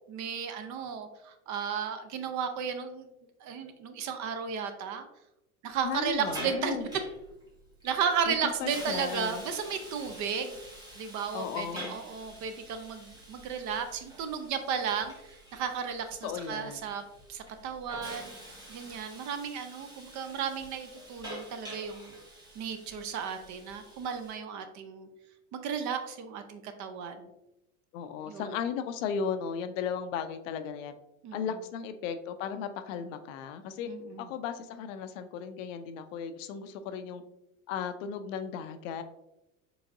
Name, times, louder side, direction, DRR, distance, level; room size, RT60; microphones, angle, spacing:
voice 1, 0.1-3.1 3.4-5.1 5.6-6.8 7.8-10.6 11.0-17.0 17.3-18.3 18.7-22.1 22.5-25.1 25.5-27.3 28.3-28.6 31.2-31.6 33.8-34.3, right 7 dB, 40° right, 9 dB, 0.6 m, -34 dB
voice 2, 5.8-6.9 8.3-8.4 8.6-9.4 11.3-12.0 16.2-16.9 27.9-30.9 31.3-33.9 34.2-37.2 37.7-39.0, left 7 dB, 60° left, 9 dB, 0.5 m, -35 dB
Hiss, 5.8-24.4, right 1 dB, 10° right, 1.5 m, -47 dB
4.7 x 3.5 x 2.6 m, 0.89 s
hypercardioid pair, 80°, 44 cm